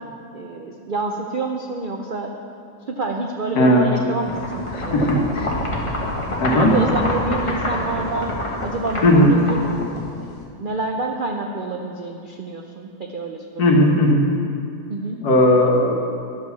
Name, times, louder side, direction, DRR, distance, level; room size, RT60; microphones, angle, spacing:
voice 1, 0.3-2.3 2.9-5.2 6.0-6.2 6.5-8.4 8.6-9.7 10.2-13.8 14.9-15.2, right 3 dB, 60° right, 1 dB, 0.5 m, -28 dB
voice 2, 3.6-3.9 4.7-5.5 6.4-6.8 9.0-9.3 13.6-14.3 15.2-15.9, left 1 dB, 75° left, 0 dB, 1.8 m, -16 dB
sound 1, 4.3-10.4, left 1 dB, 20° left, 1.4 m, -26 dB
11.5 x 6.2 x 7.0 m, 2.4 s
omnidirectional pair, 1.7 m